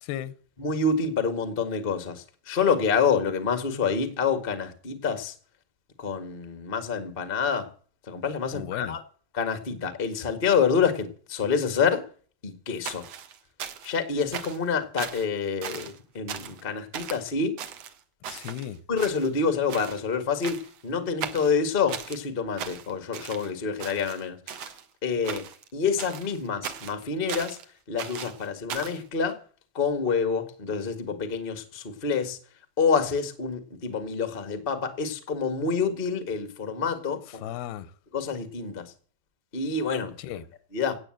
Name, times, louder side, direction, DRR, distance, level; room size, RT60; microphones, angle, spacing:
voice 1, 0.0-0.3 8.5-9.0 18.3-18.8 37.4-37.9 40.2-40.4, left 12 dB, 90° left, 2.9 m, -35 dB
voice 2, 0.6-5.3 6.0-7.7 8.1-9.0 9.3-12.0 12.4-13.0 13.8-17.5 18.9-24.7 25.0-25.4 25.7-27.6 27.9-29.4 29.7-32.4 32.8-37.4 38.1-38.9 39.5-40.2 40.7-40.9, left 5 dB, 70° left, 0.5 m, -27 dB
sound 1, 12.9-14.0 14.3-14.7 15.0-15.3 15.6-16.0 16.3-16.6 16.9-17.2 17.6-18.7 19.0-19.4 19.7-20.0 20.4-20.8 21.2-22.2 22.6-23.5 23.8-24.8 25.2-25.7 26.0-27.6 28.0-29.0, right 8 dB, 70° right, 1.5 m, -38 dB
17.5 x 7.7 x 7.7 m
omnidirectional pair, 4.5 m